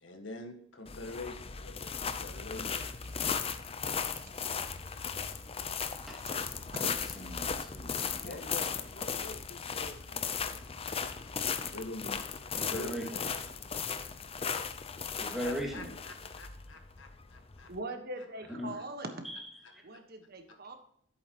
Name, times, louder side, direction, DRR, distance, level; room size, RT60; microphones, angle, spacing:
voice 1, 0.0-2.8 8.2-10.7 11.6-12.2 12.7-13.3 15.4-17.7 19.9-20.0 20.5-20.8, left 2 dB, 70° left, 5 dB, 1.6 m, -45 dB
sound 1, 0.9-17.8, left 6 dB, 30° left, 0.6 m, -37 dB
voice 2, 6.7-8.7 12.5-13.1 15.1-15.9 18.5-18.8 19.2-19.8, equal, ahead, -2 dB, 2.2 m, -40 dB
voice 3, 17.7-19.1 19.8-20.8, right 2 dB, 50° right, 6 dB, 1.4 m, -41 dB
11.0 x 8.5 x 3.0 m, 0.69 s
head